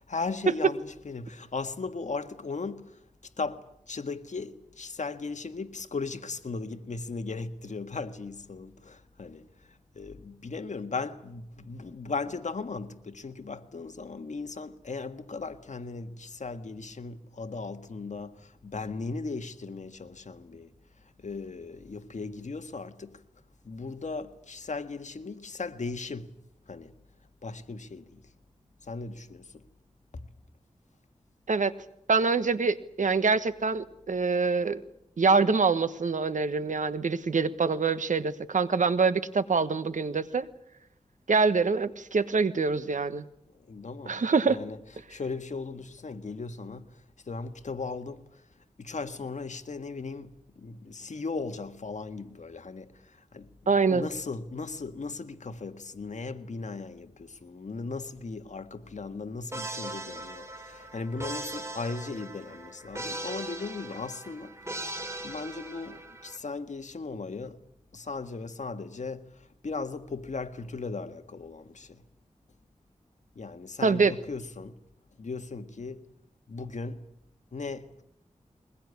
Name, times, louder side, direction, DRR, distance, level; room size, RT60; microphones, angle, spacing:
voice 1, 0.0-3.0 3.4-20.7 21.2-23.2 23.6-26.3 26.7-26.9 27.4-28.2 28.8-29.5 30.1-30.2 43.5-44.2 44.5-44.8 45.1-46.9 47.2-48.4 48.8-64.5 65.2-67.6 67.9-72.0 73.3-74.7 75.2-76.0 76.5-77.0 77.5-78.0, left 4 dB, 70° left, 1.7 m, -37 dB
voice 2, 32.1-34.8 35.2-40.5 41.3-43.2 44.1-44.6 53.7-54.1 73.8-74.1, right 4 dB, 80° right, 1.3 m, -25 dB
sound 1, 59.5-66.4, right 2 dB, 20° right, 5.2 m, -39 dB
22.5 x 21.0 x 9.7 m
wide cardioid pair, 70°, 13 cm